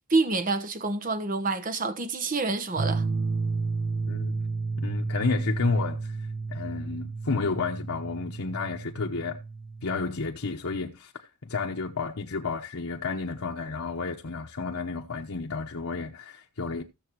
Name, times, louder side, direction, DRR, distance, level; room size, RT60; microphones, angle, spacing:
voice 1, 0.1-3.0, right 3 dB, 40° right, 1.0 m, -27 dB
sound 1, 2.8-10.0, right 4 dB, 65° right, 0.9 m, -32 dB
voice 2, 4.1-4.4 4.8-6.2 6.5-9.4 9.8-16.8, left 4 dB, 80° left, 1.1 m, -31 dB
16.0 x 6.9 x 3.0 m
head